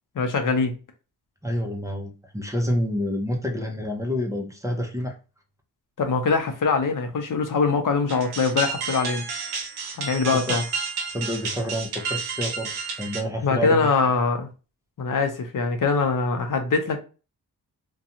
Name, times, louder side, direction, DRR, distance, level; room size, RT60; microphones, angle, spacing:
voice 1, 0.2-0.7 6.0-9.2 10.0-10.6 13.4-14.5 15.0-17.0, left 4 dB, 55° left, 0.6 m, -23 dB
voice 2, 1.4-5.2 10.3-10.6 11.1-13.9, equal, 10° right, 0.6 m, -28 dB
sound 1, 8.1-13.2, right 5 dB, 70° right, 0.7 m, -31 dB
2.5 x 2.2 x 2.8 m
cardioid pair, 80°, 39 cm